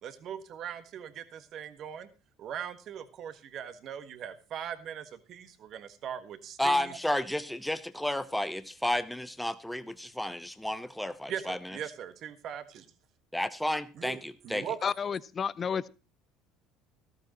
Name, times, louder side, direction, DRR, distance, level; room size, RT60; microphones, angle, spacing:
voice 1, 0.0-2.1 2.4-7.0 11.3-12.8 14.0-14.8, right 9 dB, 55° right, 1.5 m, -40 dB
voice 2, 6.6-11.8 13.3-14.7, left 1 dB, 5° left, 0.9 m, -32 dB
voice 3, 14.8-15.9, left 6 dB, 35° left, 0.6 m, -31 dB
14.0 x 13.0 x 3.0 m
hypercardioid pair, 80°, 0 cm